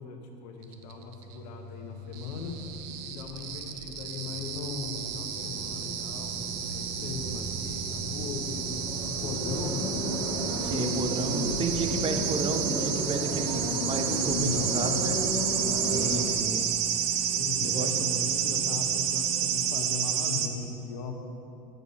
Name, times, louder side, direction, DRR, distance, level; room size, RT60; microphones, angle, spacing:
voice 1, 0.0-2.5 3.0-6.3 6.7-8.6 9.1-9.9 10.9-11.6 14.2-15.2 15.6-16.0 17.3-21.2, left 5 dB, 75° left, 3 dB, 1.0 m, -38 dB
sound 1, 0.7-20.5, right 9 dB, 70° right, 0.6 m, -31 dB
sound 2, 2.0-16.2, equal, 85° right, 1.6 m, -35 dB
sound 3, 5.4-19.7, right 1 dB, 25° left, 0.6 m, -44 dB
voice 2, 10.6-15.2 15.8-16.7 17.6-18.4, right 3 dB, 25° right, 6 dB, 0.7 m, -32 dB
6.9 x 6.7 x 4.1 m, 2.7 s
supercardioid pair, 95°, 21 cm